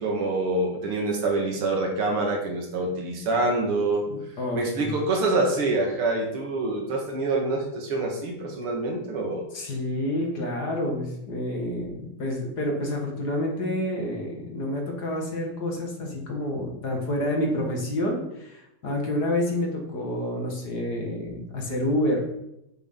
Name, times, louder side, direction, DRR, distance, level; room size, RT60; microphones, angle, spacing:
voice 1, 0.0-4.1 4.5-9.5, right 2 dB, 85° right, 1 dB, 2.6 m, -26 dB
voice 2, 4.1-5.0 9.5-22.3, left 1 dB, 50° left, 0 dB, 2.3 m, -28 dB
8.8 x 8.0 x 3.9 m, 0.85 s
omnidirectional pair, 2.4 m